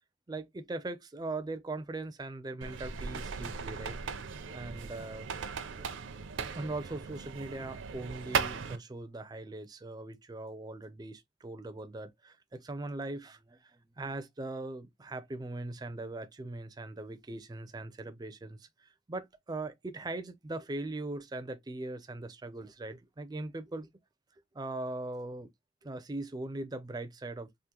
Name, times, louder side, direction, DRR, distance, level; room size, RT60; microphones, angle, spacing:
voice 1, 0.3-4.0 4.5-5.3 6.5-23.9 24.5-25.5 25.8-27.5, right 2 dB, 20° right, 0.4 m, -40 dB
sound 1, 2.6-8.8, right 5 dB, 70° right, 0.5 m, -37 dB
3.7 x 2.4 x 2.8 m
head